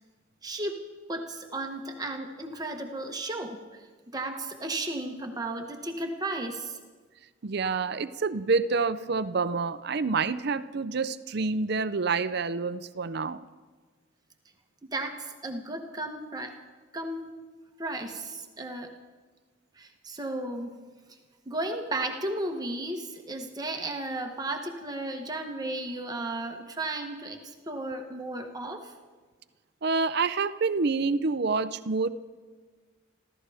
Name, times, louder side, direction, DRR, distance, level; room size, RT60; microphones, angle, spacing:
voice 1, 0.4-0.8 1.1-3.9 4.1-6.8 14.9-16.5 16.9-17.2 17.8-18.9 19.8-20.7 21.4-28.9, right 2 dB, 20° right, 3 dB, 1.2 m, -34 dB
voice 2, 7.4-13.4 29.8-32.1, right 4 dB, 55° right, 13 dB, 0.6 m, -27 dB
26.5 x 15.0 x 3.5 m, 1.4 s
head